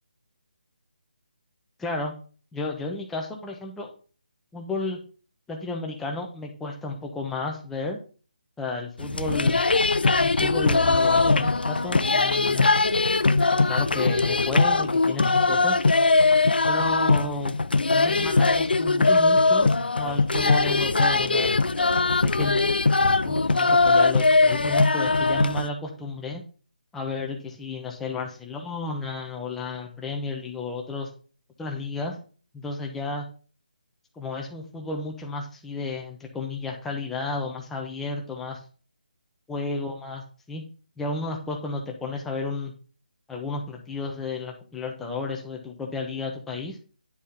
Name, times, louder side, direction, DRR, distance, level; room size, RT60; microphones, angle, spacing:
voice 1, 1.8-2.1 2.5-3.9 4.5-5.0 5.5-8.0 8.6-9.6 10.2-12.7 13.6-15.8 16.7-17.5 17.9-19.7 19.9-21.5 22.1-22.7 23.2-26.4 26.9-31.1 31.6-32.2 32.5-33.3 34.2-38.6 39.5-40.6 41.0-42.7 43.3-46.8, left 3 dB, 5° left, 1 dB, 0.9 m, -32 dB
sound 1, 9.0-25.7, left 3 dB, 90° left, 0.5 m, -21 dB
9.7 x 4.1 x 3.7 m, 0.39 s
figure-of-eight pair, 160°, 5 cm